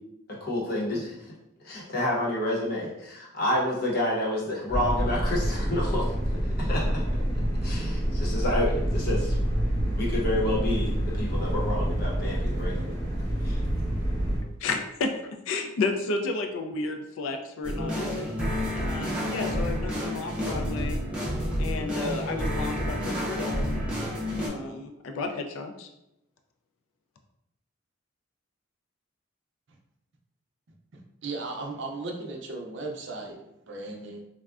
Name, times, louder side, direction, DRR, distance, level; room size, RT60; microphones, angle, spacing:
voice 1, 0.3-1.3 1.6-6.1 6.6-6.9 7.6-9.3 9.9-13.0 13.4-13.6, left 1 dB, 45° left, -4 dB, 0.8 m, -29 dB
sound 1, 4.7-14.4, equal, 20° left, 0.9 m, -27 dB
voice 2, 14.6-15.1 15.5-18.4 18.7-21.0 21.6-23.8 24.4-25.9, left 3 dB, 80° left, 5 dB, 0.3 m, -32 dB
sound 2, 17.6-24.5, equal, 5° right, 0.5 m, -29 dB
voice 3, 30.9-34.2, right 3 dB, 60° right, 2 dB, 0.4 m, -36 dB
3.4 x 2.1 x 2.4 m, 0.85 s
head